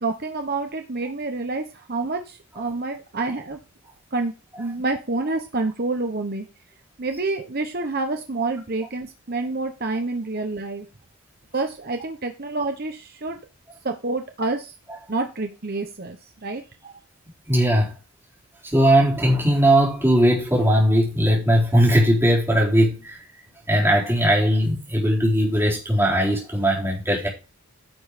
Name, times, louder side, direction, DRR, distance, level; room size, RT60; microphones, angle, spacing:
voice 1, 0.0-3.6 4.1-6.5 7.0-10.9 11.5-13.4 13.8-14.7 15.1-16.2 16.4-16.6, right 3 dB, 45° right, 1.0 m, -28 dB
voice 2, 17.5-17.9 18.7-23.2 23.7-27.3, equal, 10° right, 4.1 m, -19 dB
10.5 x 6.3 x 5.0 m
head